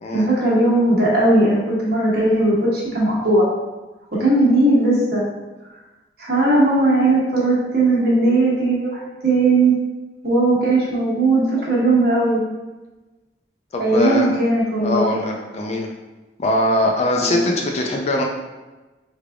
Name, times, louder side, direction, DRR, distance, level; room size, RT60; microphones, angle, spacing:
voice 1, 0.1-3.5 4.2-5.2 6.2-9.7 10.2-12.4 13.8-15.2 17.2-17.4, right 2 dB, 60° right, -7 dB, 1.2 m, -18 dB
voice 2, 13.7-14.3 14.8-15.9 16.4-18.2, left 1 dB, 35° left, 1 dB, 0.3 m, -21 dB
3.5 x 3.4 x 2.3 m, 1.1 s
head